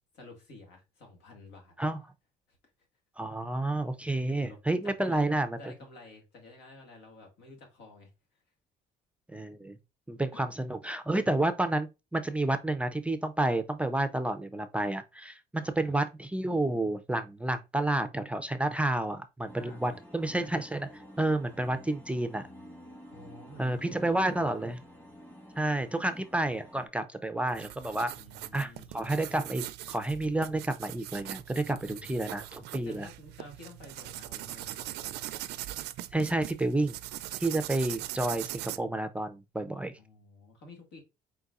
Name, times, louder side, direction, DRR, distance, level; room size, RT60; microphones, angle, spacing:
voice 1, 0.1-1.7 4.3-5.2 5.6-8.1 10.3-10.4 15.6-15.9 19.6-20.0 23.1-24.5 28.1-28.9 31.8-32.3 32.8-35.2 40.0-41.0, left 2 dB, 85° left, 1.9 m, -51 dB
voice 2, 3.2-5.6 9.3-9.8 10.1-22.4 23.6-24.8 25.6-28.1 28.5-33.1 36.1-37.0 37.4-39.9, right 2 dB, 5° right, 0.4 m, -30 dB
sound 1, 19.5-26.9, equal, 10° left, 1.2 m, -50 dB
sound 2, 27.5-38.8, right 15 dB, 80° right, 0.4 m, -41 dB
4.6 x 3.9 x 2.4 m
cardioid pair, 110°, 17 cm